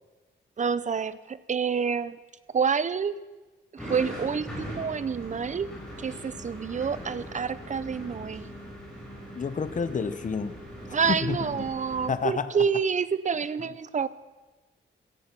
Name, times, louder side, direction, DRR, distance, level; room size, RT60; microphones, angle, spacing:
voice 1, 0.6-2.2 2.5-3.2 3.7-5.7 6.0-8.5 10.9-14.1, right 6 dB, 35° right, 16 dB, 0.6 m, -28 dB
sound 1, 3.8-12.1, equal, 5° left, 6.5 m, -41 dB
voice 2, 9.3-10.6 11.0-11.7 12.1-12.5, left 5 dB, 35° left, 12 dB, 0.9 m, -29 dB
17.0 x 13.5 x 6.1 m, 1.2 s
wide cardioid pair, 140°, 21 cm